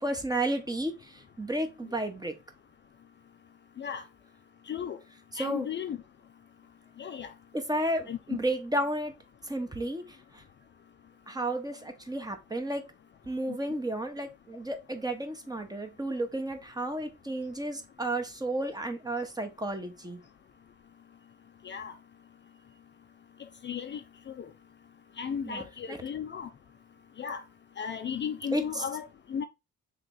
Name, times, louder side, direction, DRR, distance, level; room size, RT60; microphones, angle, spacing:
voice 1, 0.0-2.4 5.3-5.7 7.5-9.1 9.4-10.4 11.3-12.8 13.3-20.2 25.4-26.0 28.5-28.8, right 1 dB, 15° right, 0.8 m, -32 dB
voice 2, 4.7-5.0 5.4-6.0 7.0-7.3 8.1-8.2 21.6-21.9 23.6-24.0 25.2-26.5 27.2-27.4 27.8-29.4, left 7 dB, 40° left, 0.4 m, -35 dB
3.2 x 3.1 x 3.7 m
cardioid pair, 90°, 30 cm